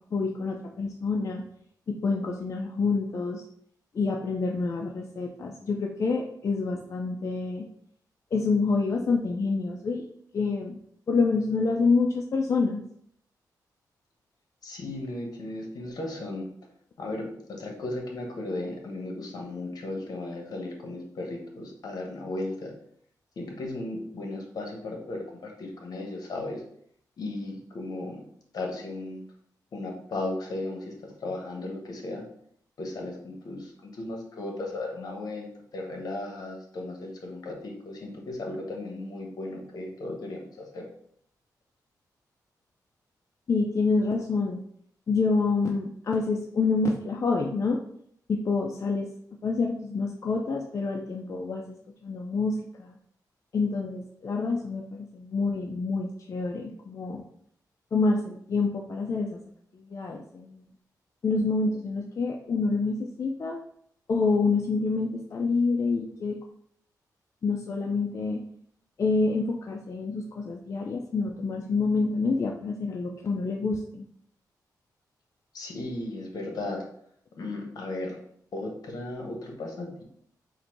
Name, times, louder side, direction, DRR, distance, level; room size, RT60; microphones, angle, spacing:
voice 1, 0.1-1.4 1.9-3.4 3.9-7.7 8.3-10.1 10.3-10.8 11.1-12.8 43.5-44.6 45.1-47.8 48.3-49.1 49.4-51.8 52.0-52.9 53.5-57.2 57.9-59.4 59.7-60.6 61.2-63.6 64.1-66.4 67.4-68.4 69.0-74.1, left 4 dB, 45° left, 0 dB, 0.4 m, -27 dB
voice 2, 14.6-16.5 17.0-22.7 23.4-26.6 27.2-28.2 28.5-29.2 29.7-32.2 32.8-35.5 35.7-40.8 75.5-76.8 77.4-78.2 78.5-80.0, left 2 dB, 65° left, 1 dB, 1.1 m, -35 dB
3.9 x 2.6 x 4.4 m, 0.67 s
wide cardioid pair, 110°, 7 cm